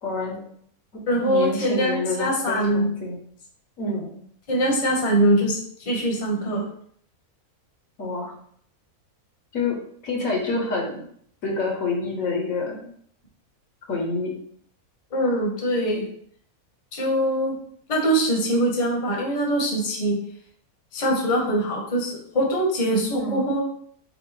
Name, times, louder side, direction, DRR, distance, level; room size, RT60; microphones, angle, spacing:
voice 1, 0.0-0.4 1.2-3.2 3.8-4.1 8.0-8.3 9.5-9.8 10.0-11.1 11.4-12.9 13.9-14.3 23.1-23.4, left 3 dB, 65° left, 0 dB, 1.2 m, -27 dB
voice 2, 1.1-2.9 4.5-6.6 15.1-16.1 16.9-17.5 17.9-20.2 20.9-23.6, right 1 dB, 30° left, -1 dB, 0.9 m, -23 dB
4.5 x 2.4 x 4.1 m, 0.63 s
omnidirectional pair, 1.6 m